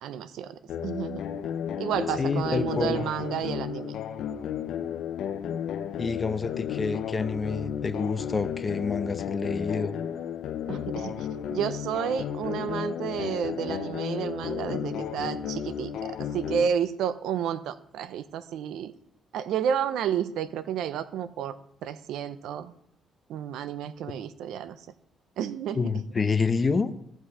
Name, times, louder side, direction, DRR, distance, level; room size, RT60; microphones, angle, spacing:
voice 1, 0.0-1.2 1.8-4.0 10.7-18.9 19.3-21.6 21.8-22.7 23.3-24.8 25.4-25.9, right 8 dB, 85° right, 14 dB, 0.7 m, -31 dB
sound 1, 0.7-16.7, left 9 dB, 80° left, 0.8 m, -33 dB
voice 2, 2.2-3.1 6.0-9.9 25.8-26.9, left 4 dB, 30° left, 10 dB, 0.9 m, -28 dB
14.5 x 6.4 x 4.9 m, 0.72 s
cardioid pair, 90°, 0 cm